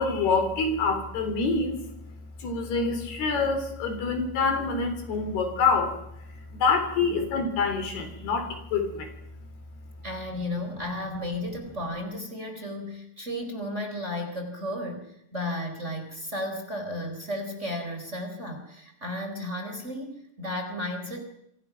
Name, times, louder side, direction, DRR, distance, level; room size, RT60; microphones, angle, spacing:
voice 1, 0.0-1.8 2.1-6.0 6.3-9.1, left 4 dB, 75° left, 7 dB, 5.6 m, -26 dB
voice 2, 10.0-21.2, left 1 dB, 15° right, 5 dB, 3.9 m, -34 dB
27.0 x 25.0 x 6.0 m, 0.78 s
omnidirectional pair, 4.6 m